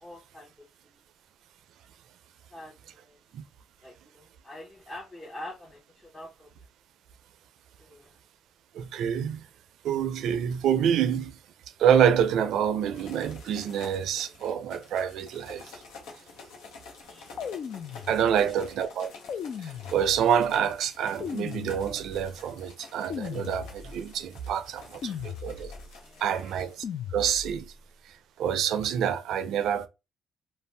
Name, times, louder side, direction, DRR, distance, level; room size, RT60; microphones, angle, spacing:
voice 1, 0.0-1.0 2.5-3.2 3.8-6.5 7.8-8.2 17.1-17.3 17.9-18.7 25.0-25.3 26.0-26.6, left 1 dB, 25° left, 0.8 m, -46 dB
voice 2, 8.7-9.5 9.8-11.4 11.8-15.8 18.1-19.1 19.6-25.7 26.2-26.8 27.1-27.7 28.4-29.9, right 8 dB, 75° right, 0.4 m, -27 dB
sound 1, 12.9-26.8, left 4 dB, 90° left, 0.7 m, -49 dB
sound 2, 17.4-18.6 19.3-20.5 21.2-22.3 23.1-24.1 25.0-26.0 26.8-27.7, left 7 dB, 60° left, 0.3 m, -37 dB
2.5 x 2.1 x 3.2 m
supercardioid pair, 75°, 0 cm